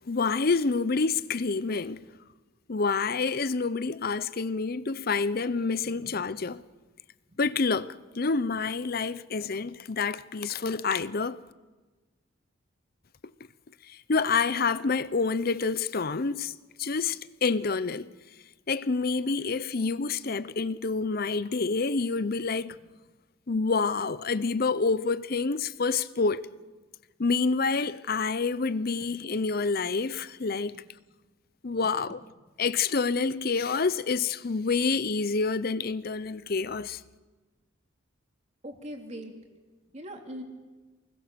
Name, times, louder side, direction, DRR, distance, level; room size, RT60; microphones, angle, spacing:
voice 1, 0.1-2.0 2.7-6.6 7.4-11.4 13.9-16.5 16.8-18.1 18.7-22.8 23.5-26.4 27.2-30.8 31.6-32.2 32.6-37.0, left 4 dB, 45° left, 0.7 m, -28 dB
voice 2, 5.8-6.3 7.3-7.4 38.6-39.3 39.9-40.4, equal, 35° right, 3.0 m, -42 dB
28.0 x 21.0 x 6.9 m
head